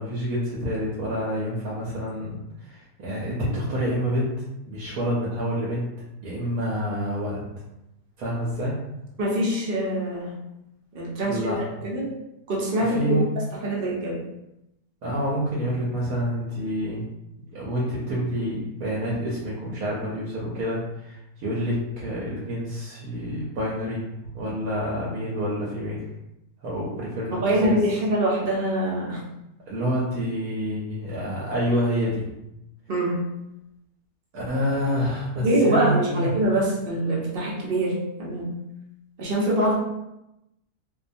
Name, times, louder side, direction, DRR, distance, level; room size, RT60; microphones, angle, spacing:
voice 1, 0.0-4.3 4.7-5.9 6.2-7.4 8.2-8.7 11.3-11.8 12.8-13.2 15.0-17.1 17.5-24.1 24.3-26.0 26.6-27.8 29.7-32.3 34.3-36.3, equal, 75° right, -5 dB, 1.0 m, -28 dB
voice 2, 9.2-10.3 10.9-11.4 11.8-12.1 12.5-13.0 13.4-14.2 27.3-29.2 32.9-33.2 35.4-38.5 39.2-39.7, right 1 dB, 50° right, -4 dB, 0.7 m, -24 dB
2.7 x 2.2 x 2.5 m, 0.88 s
omnidirectional pair, 1.6 m